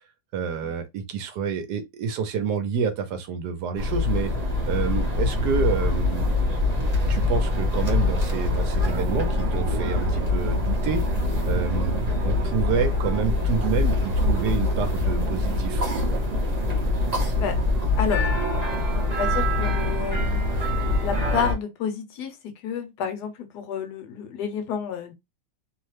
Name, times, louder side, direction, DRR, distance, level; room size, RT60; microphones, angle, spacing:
voice 1, 0.3-4.3 4.7-6.4 7.1-11.0 11.5-12.0 12.2-15.8, right 6 dB, 75° right, 1.2 m, -28 dB
sound 1, 3.8-21.5, left 2 dB, 40° right, 0.6 m, -24 dB
voice 2, 18.0-20.4 20.8-25.1, left 7 dB, 75° left, 1.1 m, -31 dB
2.9 x 2.1 x 3.1 m
omnidirectional pair, 1.9 m